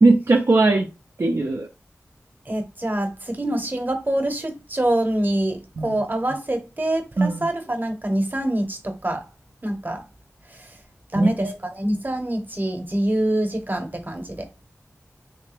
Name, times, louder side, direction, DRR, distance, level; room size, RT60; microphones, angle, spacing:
voice 1, 0.0-0.9 1.2-1.7 5.8-6.0 7.2-7.5 11.2-11.5, right 3 dB, 60° right, 0.5 m, -19 dB
voice 2, 2.5-9.2 9.6-10.0 10.5-10.7 11.1-14.5, right 1 dB, 35° right, 1.0 m, -25 dB
3.3 x 3.3 x 3.3 m
wide cardioid pair, 45°, 6 cm